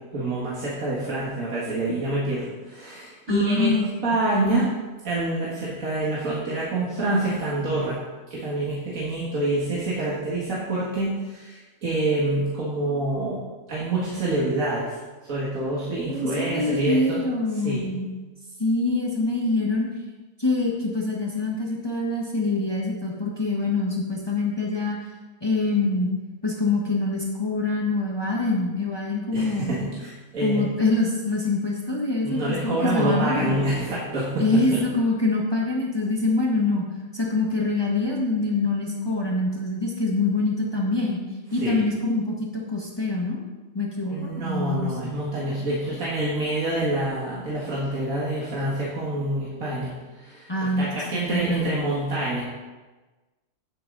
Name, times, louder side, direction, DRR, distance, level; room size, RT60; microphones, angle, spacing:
voice 1, 0.1-3.7 4.0-4.7 5.0-8.0 8.3-13.4 13.7-15.0 15.2-17.2 17.5-17.9 29.3-30.6 32.2-34.8 41.6-41.9 44.1-50.5 50.8-52.4, right 1 dB, 85° right, -7 dB, 2.3 m, -26 dB
voice 2, 3.3-3.9 16.1-18.1 18.6-19.9 20.4-25.0 25.4-26.1 26.4-29.8 30.4-33.6 34.4-41.2 41.5-43.4 43.7-45.1 50.5-51.6, left 2 dB, 20° left, -2 dB, 1.4 m, -25 dB
9.7 x 9.2 x 4.0 m, 1.2 s
omnidirectional pair, 1.4 m